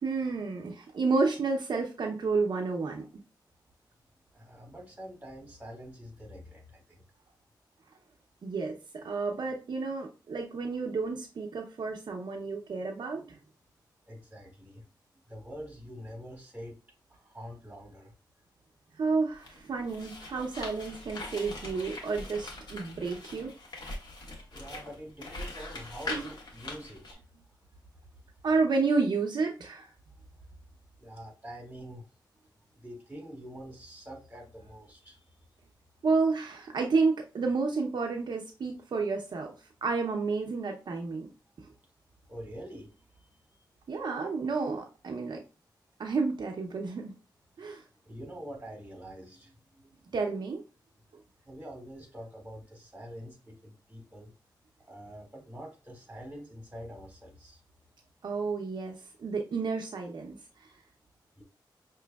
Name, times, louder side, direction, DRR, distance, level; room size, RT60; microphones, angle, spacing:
voice 1, 0.0-3.1 8.4-13.4 19.0-23.5 26.1-26.3 28.4-29.9 36.0-41.3 41.6-41.7 43.9-45.4 46.0-47.1 47.6-47.8 50.1-50.6 58.2-60.7, right 4 dB, 65° right, 1 dB, 0.7 m, -31 dB
voice 2, 4.3-7.0 14.1-14.9 15.3-16.8 17.1-18.1 24.5-27.2 30.4-30.5 31.0-32.0 32.8-35.2 42.3-42.9 43.2-43.3 47.6-50.1 51.4-54.3 54.9-57.6 61.4-61.5, equal, 20° right, -1 dB, 2.1 m, -45 dB
sound 1, 19.3-27.1, left 2 dB, 65° left, 1.3 m, -42 dB
5.9 x 3.1 x 2.3 m, 0.32 s
wide cardioid pair, 95°, 8 cm